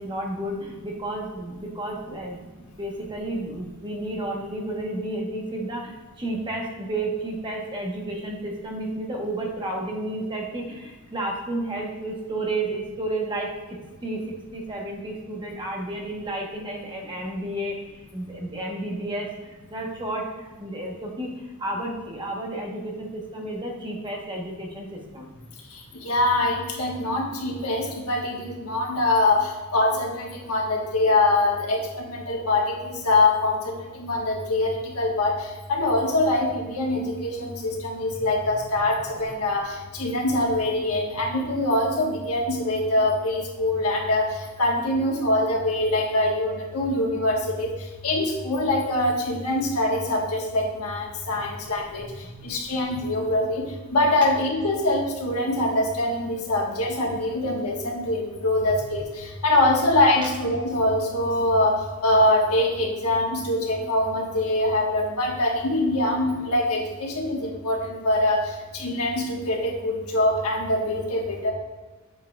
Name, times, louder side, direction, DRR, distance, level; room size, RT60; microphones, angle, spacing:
voice 1, 0.0-14.2 14.5-25.4 51.3-51.4 52.2-52.4, right 1 dB, 20° right, -1 dB, 1.1 m, -32 dB
voice 2, 26.0-44.3 44.6-47.7 48.0-52.0 52.4-71.5, left 2 dB, 80° left, -1 dB, 1.4 m, -24 dB
7.8 x 7.5 x 2.3 m, 1.3 s
head